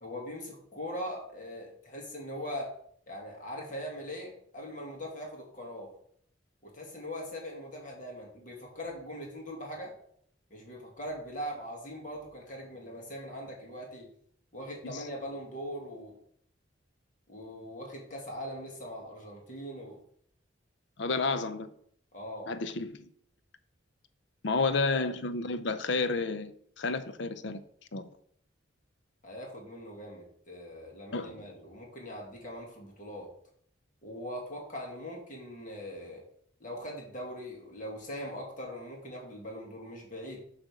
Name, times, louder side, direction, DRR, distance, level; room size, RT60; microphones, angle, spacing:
voice 1, 0.0-2.7 3.1-5.9 6.6-10.0 10.5-14.1 14.5-16.2 17.3-20.0 22.1-22.5 24.6-25.0 29.2-33.3 34.0-36.2 36.6-40.4, equal, 40° left, 2.0 m, -41 dB
voice 2, 21.0-21.7 22.5-23.1 24.4-27.6 27.9-28.0 31.1-31.4, left 3 dB, 60° left, 0.6 m, -31 dB
7.6 x 3.4 x 6.3 m
head